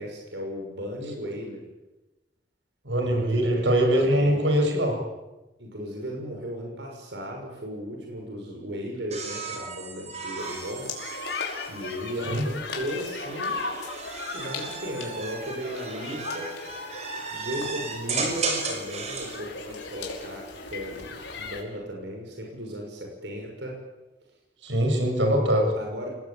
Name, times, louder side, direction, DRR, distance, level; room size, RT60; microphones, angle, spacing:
voice 1, 0.0-1.7 3.0-3.7 4.0-4.5 5.6-10.9 11.7-13.6 14.3-16.5 17.3-23.8 25.8-26.1, equal, 70° right, 1 dB, 6.5 m, -36 dB
voice 2, 2.9-5.0 12.3-12.4 24.6-25.7, right 1 dB, 90° right, 3 dB, 7.3 m, -22 dB
sound 1, 9.1-12.4 13.2-19.4 20.9-21.4, right 4 dB, 40° right, 5.6 m, -35 dB
sound 2, 10.4-21.6, left 4 dB, 80° left, 5.4 m, -37 dB
29.0 x 19.5 x 9.0 m, 1.0 s
head